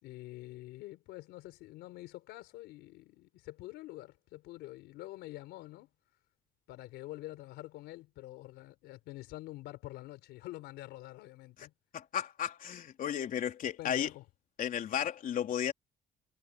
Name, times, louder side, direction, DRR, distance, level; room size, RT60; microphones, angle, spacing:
voice 1, 0.0-5.9 6.7-11.7 13.8-14.2, left 17 dB, 90° left, 4.3 m, -46 dB
voice 2, 11.9-14.1 14.6-15.7, left 9 dB, 55° left, 3.7 m, -34 dB
cardioid pair, 110°, 17 cm